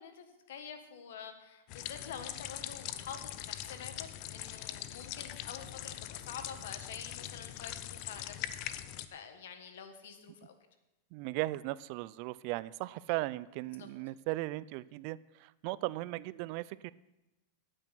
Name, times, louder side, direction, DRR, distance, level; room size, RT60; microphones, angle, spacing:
voice 1, 0.0-10.5 13.8-13.9, left 7 dB, 80° left, 7 dB, 1.6 m, -48 dB
sound 1, 1.7-9.1, left 13 dB, 45° left, 0.6 m, -42 dB
voice 2, 11.1-16.9, right 19 dB, 45° right, 19 dB, 0.3 m, -37 dB
11.0 x 8.9 x 5.9 m, 0.95 s
supercardioid pair, 150°, 0 cm